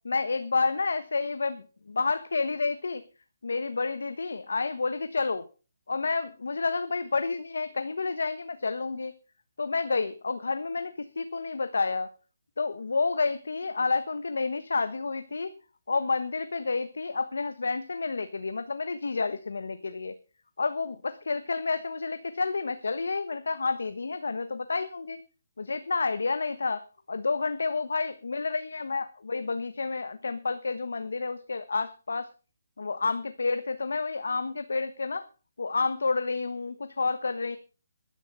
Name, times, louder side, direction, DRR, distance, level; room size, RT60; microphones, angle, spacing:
voice 1, 0.0-3.0 3.4-5.4 5.9-9.1 9.6-12.1 12.6-15.5 15.9-20.2 20.6-25.2 25.6-26.8 27.1-32.3 32.8-35.2 35.6-37.6, left 4 dB, 80° left, 11 dB, 1.2 m, -30 dB
13.0 x 11.0 x 5.5 m, 0.35 s
hypercardioid pair, 165°, 0 cm